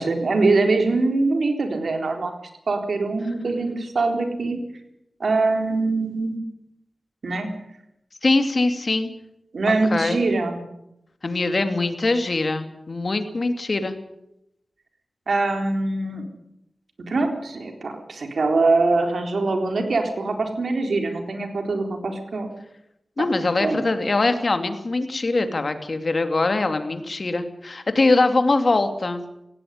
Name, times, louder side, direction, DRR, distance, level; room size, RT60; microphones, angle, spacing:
voice 1, 0.0-2.3 2.7-4.6 5.2-6.4 7.2-7.5 9.5-10.6 15.3-16.3 17.1-22.5 23.6-23.8, right 3 dB, 75° right, 5 dB, 3.9 m, -23 dB
voice 2, 8.2-9.1 9.9-10.2 11.2-13.9 23.2-29.2, left 2 dB, 50° left, 8 dB, 2.6 m, -22 dB
17.5 x 16.5 x 9.6 m, 0.83 s
wide cardioid pair, 75°, 0 cm